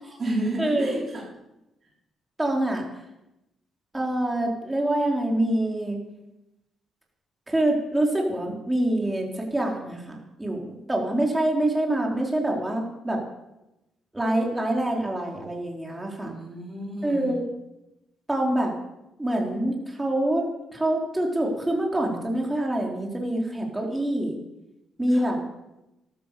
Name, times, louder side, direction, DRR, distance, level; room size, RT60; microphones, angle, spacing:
voice 1, 0.0-1.3 16.2-17.3 25.1-25.3, right 1 dB, 40° right, -4 dB, 4.4 m, -31 dB
voice 2, 0.6-1.0 2.4-2.8 3.9-6.0 7.5-13.2 14.1-16.3 17.0-17.4 18.3-18.7 19.2-20.4 20.7-24.3 25.0-25.4, right 1 dB, 15° right, 0 dB, 4.3 m, -25 dB
13.5 x 12.0 x 7.1 m, 0.93 s
cardioid pair, 90°, 0 cm